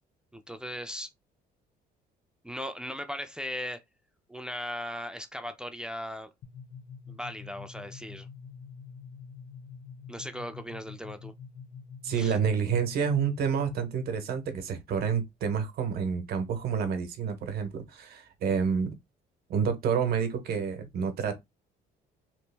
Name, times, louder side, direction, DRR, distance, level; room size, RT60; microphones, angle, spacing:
voice 1, 0.3-1.1 2.4-3.8 4.3-6.3 7.1-8.3 10.1-11.3 12.1-12.4, equal, 5° right, 0.4 m, -38 dB
sound 1, 6.4-14.0, left 6 dB, 55° left, 0.7 m, -46 dB
voice 2, 12.0-18.9 19.5-21.4, right 6 dB, 65° right, 1.0 m, -29 dB
3.1 x 2.4 x 3.3 m
cardioid pair, 110°, 17 cm